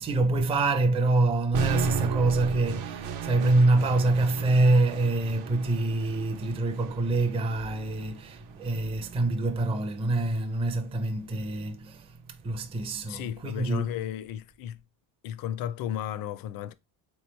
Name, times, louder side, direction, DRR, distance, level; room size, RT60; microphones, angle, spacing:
voice 1, 0.0-12.2 12.4-13.9, right 2 dB, 15° right, 0.4 m, -25 dB
sound 1, 1.5-9.6, right 7 dB, 70° right, 0.8 m, -36 dB
voice 2, 13.1-14.8 15.2-16.7, left 10 dB, 50° left, 0.5 m, -34 dB
3.7 x 3.2 x 3.0 m
cardioid pair, 120°, 45 cm